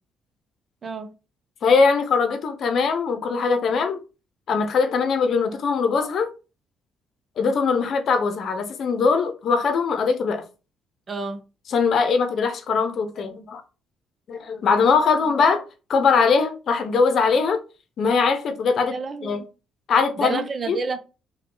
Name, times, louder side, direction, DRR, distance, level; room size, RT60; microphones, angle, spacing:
voice 1, 0.8-1.1 11.1-11.4 18.9-19.5 20.2-21.0, right 4 dB, 45° right, 0.6 m, -29 dB
voice 2, 1.6-4.0 4.5-6.3 7.4-10.4 11.7-13.6 14.3-15.6 15.9-17.6 18.0-19.0 19.2-19.4 19.9-20.8, left 5 dB, 60° left, 0.7 m, -21 dB
3.7 x 2.3 x 3.8 m
supercardioid pair, 60°, 0 cm